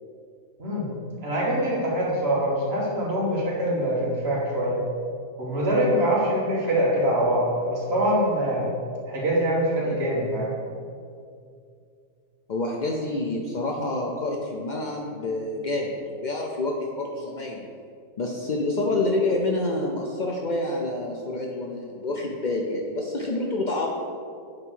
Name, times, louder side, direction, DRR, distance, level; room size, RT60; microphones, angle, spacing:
voice 1, 0.6-0.9 1.2-4.8 5.4-8.7 9.1-10.5, right 1 dB, 40° right, -5 dB, 2.1 m, -24 dB
voice 2, 12.5-17.7 18.2-23.9, left 2 dB, 75° left, 0 dB, 0.4 m, -28 dB
9.0 x 4.0 x 6.2 m, 2.4 s
omnidirectional pair, 1.7 m